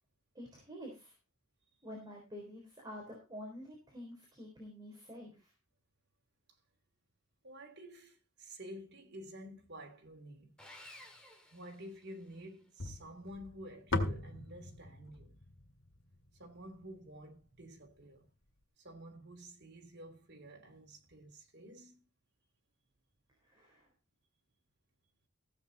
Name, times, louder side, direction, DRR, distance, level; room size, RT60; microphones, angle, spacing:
voice 1, 0.3-1.1 1.8-5.5 23.4-23.9, equal, 20° right, 3.9 m, -48 dB
voice 2, 7.4-10.6 11.5-15.4 16.4-18.3 18.8-22.0, equal, 50° right, 3.2 m, -51 dB
Sawing, 10.6-12.5, left 1 dB, 5° left, 2.5 m, -55 dB
sound 1, 12.8-17.1, left 2 dB, 70° left, 1.9 m, -39 dB
15.5 x 8.1 x 4.1 m
head